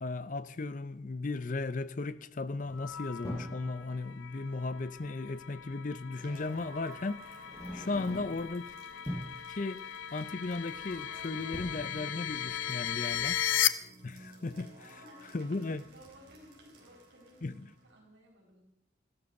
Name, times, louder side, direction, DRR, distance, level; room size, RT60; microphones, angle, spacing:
voice 1, 0.0-8.7 9.5-9.8 10.1-13.4 14.0-14.9 15.3-15.8 17.4-17.6, left 3 dB, 40° left, 0.6 m, -36 dB
sound 1, 2.6-3.7 5.3-5.4 6.5-6.7 7.3-8.6 8.9-9.4 10.8-11.1 11.4-11.7, equal, 20° left, 6.4 m, -42 dB
sound 2, 2.7-13.7, left 11 dB, 80° left, 0.8 m, -37 dB
sound 3, 6.1-18.0, right 1 dB, 55° right, 4.3 m, -54 dB
voice 2, 14.7-18.6, equal, 75° right, 4.9 m, -58 dB
15.5 x 12.5 x 6.5 m
head